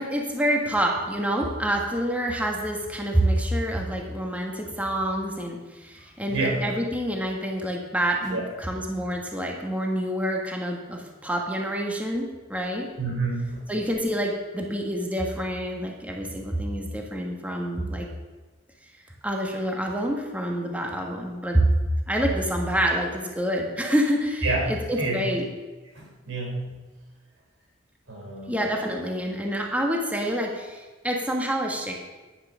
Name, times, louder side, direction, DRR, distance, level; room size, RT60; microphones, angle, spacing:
voice 1, 0.0-12.9 13.7-18.1 19.2-21.6 22.1-25.5 28.5-31.9, right 1 dB, 10° right, 0 dB, 1.4 m, -27 dB
voice 2, 6.3-6.6 8.3-8.4 13.0-13.6 24.4-24.7 25.0-25.2 26.0-26.6 28.1-28.5, right 3 dB, 90° right, 0 dB, 3.5 m, -28 dB
10.5 x 10.0 x 6.3 m, 1.3 s
head